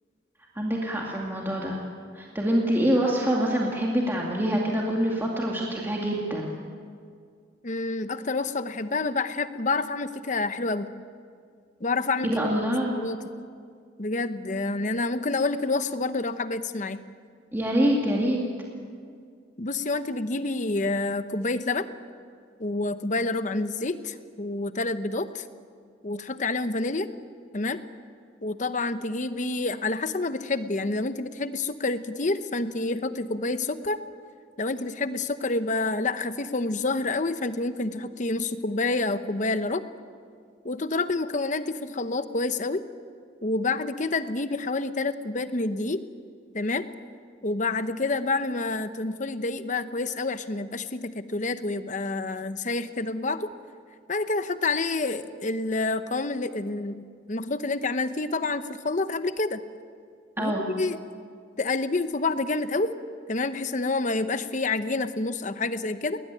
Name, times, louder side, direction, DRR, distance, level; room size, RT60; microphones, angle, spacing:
voice 1, 0.6-1.8 2.1-6.5 12.2-13.0 17.5-18.4 60.4-60.7, equal, 10° right, -3 dB, 2.3 m, -25 dB
voice 2, 7.6-10.9 11.8-12.6 13.0-13.2 14.0-17.0 19.6-21.9 22.6-25.5 26.0-27.1 27.5-27.8 28.4-34.0 34.6-39.8 40.6-42.8 43.4-46.0 46.5-46.9 47.4-53.5 54.1-56.9 57.3-59.6 60.4-61.0 61.6-62.9 63.3-66.2, left 3 dB, 40° left, 11 dB, 0.9 m, -28 dB
20.5 x 20.0 x 9.2 m, 2.1 s
head